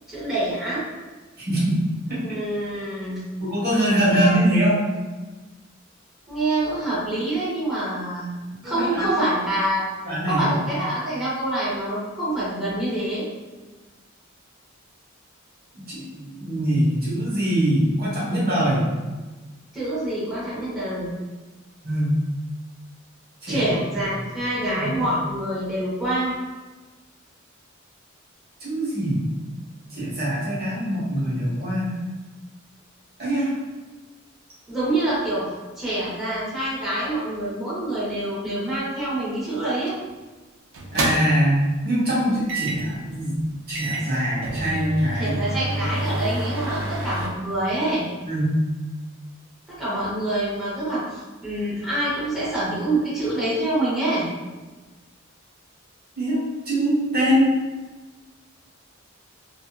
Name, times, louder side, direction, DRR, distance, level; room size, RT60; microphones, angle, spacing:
voice 1, 0.1-0.8 2.2-3.2 4.1-4.3 6.3-8.3 8.6-9.9 10.3-13.2 19.7-21.1 23.5-26.3 34.7-39.9 45.2-48.0 49.7-54.3, right 1 dB, ahead, -12 dB, 1.0 m, -26 dB
voice 2, 1.4-1.8 2.1-2.2 3.4-4.8 8.6-9.2 10.0-10.5 15.9-18.9 21.8-22.2 23.4-23.6 24.6-25.1 28.6-29.2 29.9-32.0 33.2-33.5 40.9-43.3 43.7-45.4 48.2-48.6 56.2-57.5, right 1 dB, 45° right, -9 dB, 1.1 m, -23 dB
sound 1, 39.9-40.1 40.7-41.5 42.5-42.9 43.4-43.5 43.7-47.3, right 1 dB, 65° right, 0.4 m, -28 dB
2.7 x 2.5 x 2.3 m, 1.2 s
head